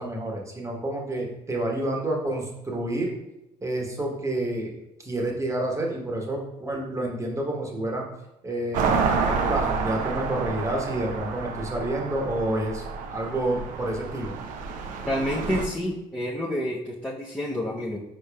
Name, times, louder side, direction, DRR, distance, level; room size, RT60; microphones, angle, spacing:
voice 1, 0.0-3.1 3.6-4.7 5.0-8.0 8.4-12.8 13.1-14.3, right 1 dB, 20° right, 0 dB, 1.1 m, -29 dB
sound 1, 8.7-15.7, right 5 dB, 70° right, 0.6 m, -29 dB
voice 2, 15.1-18.0, equal, 10° left, -6 dB, 0.7 m, -29 dB
5.0 x 4.1 x 2.3 m, 0.91 s
hypercardioid pair, 65°, 14 cm